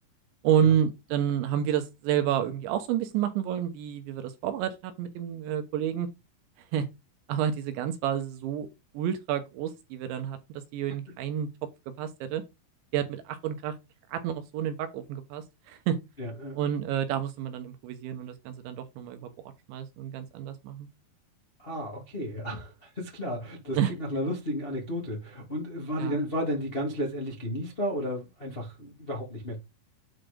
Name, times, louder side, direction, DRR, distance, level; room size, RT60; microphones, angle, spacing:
voice 1, 0.4-6.1 6.7-6.9 7.3-8.7 8.9-11.5 12.0-12.4 12.9-13.8 14.1-16.0 16.6-20.9 23.8-23.9 26.0-26.2, right 9 dB, 75° right, 3.1 m, -29 dB
voice 2, 16.2-16.6 21.6-29.5, equal, 60° left, 0.6 m, -33 dB
8.9 x 4.2 x 5.1 m
omnidirectional pair, 5.8 m